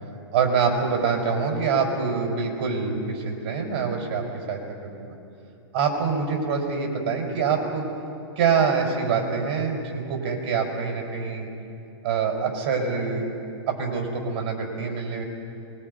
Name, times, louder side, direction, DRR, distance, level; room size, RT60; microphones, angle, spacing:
voice 1, 0.3-5.1 5.7-7.8 8.4-11.5 12.0-13.3 13.7-15.2, right 5 dB, 40° right, 1 dB, 5.4 m, -25 dB
24.5 x 22.0 x 5.5 m, 2.7 s
hypercardioid pair, 140°, 14 cm